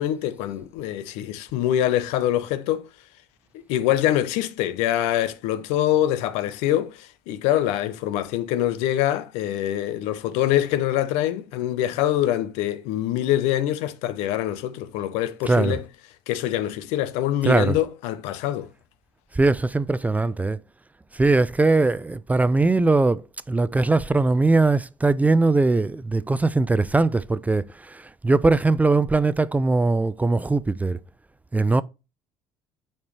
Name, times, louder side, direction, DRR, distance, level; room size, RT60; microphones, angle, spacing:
voice 1, 0.0-2.9 3.5-15.8 16.3-18.7, left 12 dB, 80° left, 0.8 m, -24 dB
voice 2, 15.5-15.8 17.4-17.8 19.3-20.6 21.1-31.0 31.5-31.8, right 3 dB, 15° right, 0.4 m, -20 dB
8.6 x 4.4 x 3.2 m
supercardioid pair, 85°, 11 cm